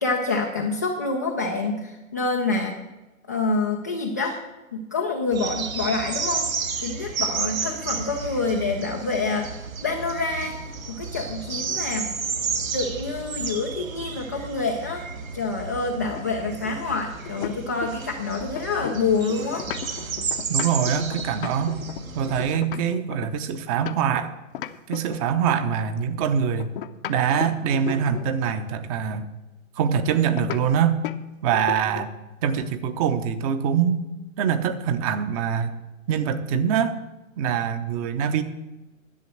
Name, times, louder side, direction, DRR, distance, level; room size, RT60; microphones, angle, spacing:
voice 1, 0.0-2.8 3.3-4.4 4.7-6.5 6.8-9.5 9.8-12.1 12.7-15.1 15.3-19.7, left 3 dB, 15° left, 0 dB, 0.3 m, -27 dB
sound 1, 5.3-22.5, right 5 dB, 75° right, 1.9 m, -32 dB
sound 2, 16.1-18.1 18.4-24.2 24.5-25.7 26.6-28.4 30.4-30.6 31.0-31.2 31.5-32.2, left 11 dB, 40° left, 0.7 m, -35 dB
voice 2, 20.5-21.8 22.1-24.3 24.9-26.7 27.1-29.3 29.8-31.0 31.4-32.1 32.4-34.0 34.4-35.7 36.1-37.0 37.4-38.4, right 7 dB, 25° right, 11 dB, 0.8 m, -24 dB
11.0 x 7.5 x 7.8 m, 1.1 s
figure-of-eight pair, 125°, 41 cm